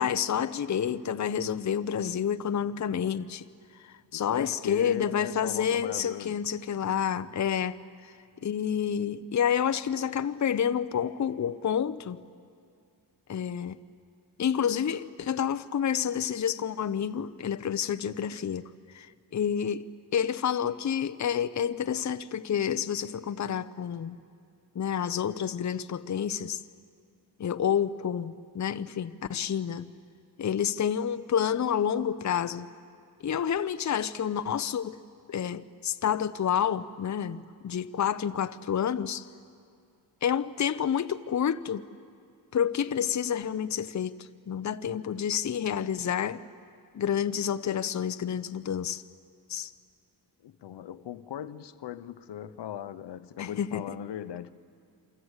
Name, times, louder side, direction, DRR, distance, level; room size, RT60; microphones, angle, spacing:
voice 1, 0.0-3.4 3.8-7.8 8.4-12.2 13.3-13.8 14.4-19.9 20.1-24.2 24.7-26.6 27.4-29.9 30.4-32.7 33.2-35.0 35.3-39.3 40.2-41.9 42.5-46.4 46.9-49.0 49.5-49.7 53.4-53.8, left 8 dB, 45° left, 0.8 m, -29 dB
voice 2, 4.1-6.4 50.4-54.5, left 10 dB, 75° left, 0.9 m, -38 dB
28.0 x 24.5 x 8.2 m
cardioid pair, 100°, 42 cm